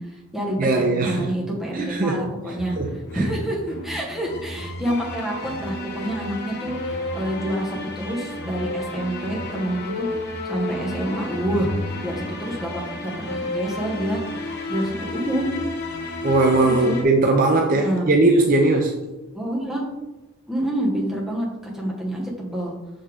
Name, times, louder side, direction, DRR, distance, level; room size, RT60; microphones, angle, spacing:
voice 1, 0.0-2.7 3.1-10.1 10.5-11.7 12.0-14.2 14.7-15.5 16.6-17.0 17.7-18.1 19.3-19.9 20.5-22.8, right 1 dB, ahead, -4 dB, 1.2 m, -27 dB
voice 2, 0.6-1.3 1.7-2.2 2.8-3.3 16.2-19.0, right 2 dB, 40° right, 2 dB, 0.5 m, -19 dB
sound 1, 2.6-17.0, left 2 dB, 50° left, 1.0 m, -32 dB
5.4 x 5.0 x 3.6 m, 1.0 s
head